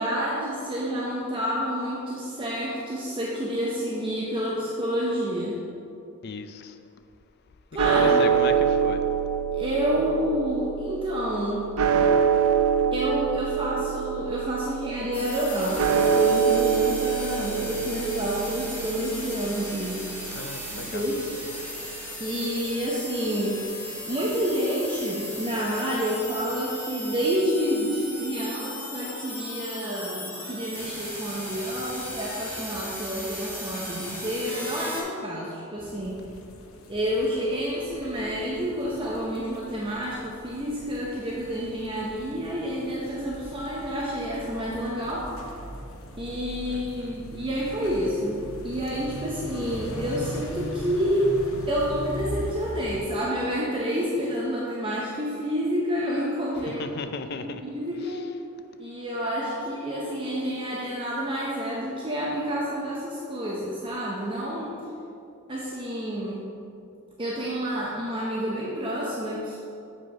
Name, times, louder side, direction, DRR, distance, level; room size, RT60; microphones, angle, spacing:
voice 1, 0.0-5.6 7.7-8.2 9.5-11.7 12.9-20.1 20.7-21.3 22.2-23.7 24.1-36.3 36.9-45.3 46.2-51.3 51.7-56.9 57.6-58.2 58.8-64.7 65.5-66.6 67.2-69.6, equal, 25° right, -4 dB, 0.7 m, -29 dB
voice 2, 6.2-6.8 7.8-9.0 20.3-21.0 46.7-47.2 56.8-57.6, left 4 dB, 50° left, 9 dB, 0.4 m, -35 dB
sound 1, 7.8-22.0, right 7 dB, 85° right, 0.5 m, -26 dB
sound 2, 15.1-35.0, left 1 dB, 10° left, 1.6 m, -37 dB
sound 3, 35.8-53.0, equal, 75° left, 0.9 m, -40 dB
7.4 x 5.2 x 4.8 m, 2.6 s
head